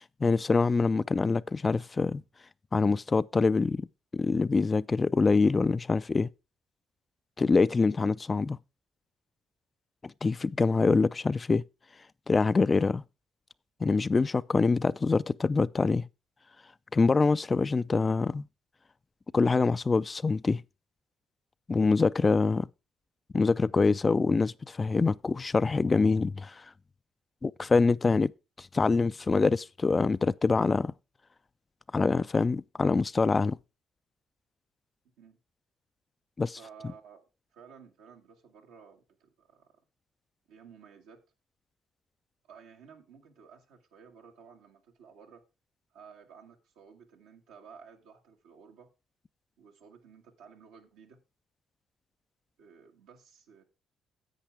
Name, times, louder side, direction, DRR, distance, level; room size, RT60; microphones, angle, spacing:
voice 1, 0.2-2.2 2.7-3.9 4.1-6.3 7.4-8.6 10.0-11.6 12.3-13.0 13.8-16.1 16.9-18.5 19.3-20.6 21.7-22.7 23.3-26.7 27.4-28.3 28.6-30.9 31.9-33.6 36.4-36.6, left 4 dB, 35° left, 0.4 m, -25 dB
voice 2, 36.5-37.2 37.5-39.8 40.5-41.2 42.4-45.4 45.9-48.9 49.6-51.2 52.6-53.6, right 6 dB, 85° right, 1.6 m, -54 dB
10.0 x 8.2 x 3.4 m
supercardioid pair, 55°, 0 cm